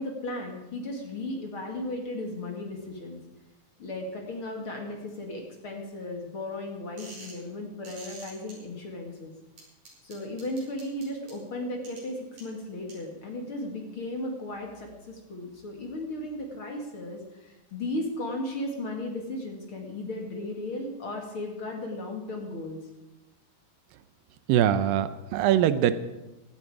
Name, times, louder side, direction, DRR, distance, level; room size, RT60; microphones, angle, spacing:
voice 1, 0.0-3.2 3.8-9.3 10.0-22.8, left 1 dB, 45° left, 1 dB, 2.3 m, -35 dB
sound 1, 7.0-7.4 7.8-8.5 9.6-11.3 11.8-12.0 12.4-12.5 12.9-13.0, right 3 dB, 50° right, 6.6 m, -45 dB
voice 2, 24.5-26.0, right 10 dB, 80° right, 13 dB, 2.4 m, -22 dB
17.0 x 13.0 x 4.8 m, 1.0 s
omnidirectional pair, 4.1 m